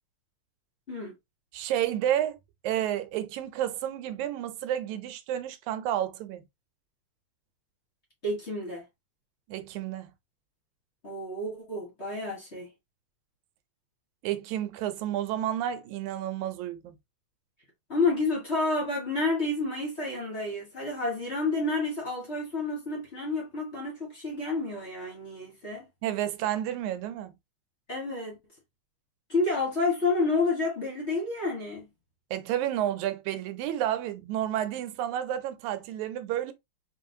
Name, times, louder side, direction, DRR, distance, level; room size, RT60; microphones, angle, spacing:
voice 1, 1.5-2.4 2.6-6.4 9.5-10.1 14.2-17.0 26.0-27.4 32.3-36.5, right 11 dB, 80° right, 2.0 m, -31 dB
voice 2, 8.2-8.8 11.0-12.7 17.9-25.8 27.9-28.4 29.3-31.9, left 3 dB, 40° left, 1.0 m, -29 dB
5.0 x 3.1 x 2.7 m
omnidirectional pair, 3.4 m